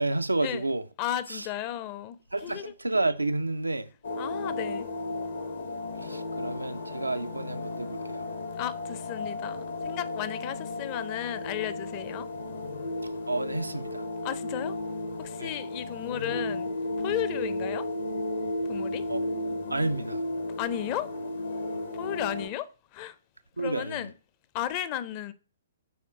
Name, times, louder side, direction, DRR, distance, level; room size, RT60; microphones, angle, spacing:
voice 1, 0.0-0.8 2.3-3.9 6.0-8.3 13.3-14.0 15.4-15.5 19.1-19.2 19.7-20.2 23.6-24.0, right 2 dB, 80° right, 0.4 m, -30 dB
voice 2, 1.0-2.7 4.2-4.9 8.6-12.3 14.2-14.8 15.2-16.7 17.0-17.9 18.7-19.1 20.6-21.1 21.9-23.2 23.6-24.1 24.5-25.3, left 12 dB, 30° left, 0.6 m, -34 dB
sound 1, 4.0-22.5, left 2 dB, 65° left, 1.0 m, -34 dB
8.6 x 3.7 x 3.7 m
figure-of-eight pair, 120°, 0 cm